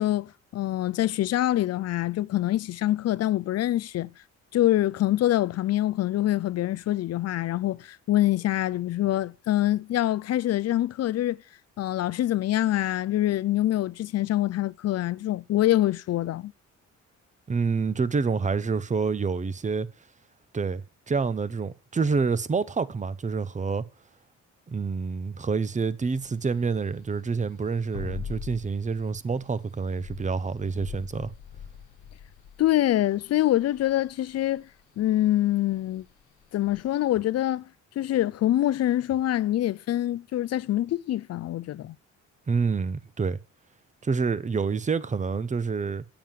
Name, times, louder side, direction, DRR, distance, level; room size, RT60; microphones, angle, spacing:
voice 1, 0.0-4.1 4.5-11.4 11.8-16.5 32.6-34.6 35.0-36.0 36.5-37.7 38.0-42.0, left 14 dB, 55° left, 0.5 m, -25 dB
voice 2, 17.5-19.9 20.5-23.8 24.7-31.3 42.5-43.4 44.0-46.0, right 5 dB, 25° right, 0.8 m, -27 dB
sound 1, 26.1-36.9, left 8 dB, 85° left, 1.2 m, -43 dB
9.3 x 7.0 x 7.4 m
cardioid pair, 90°, 30 cm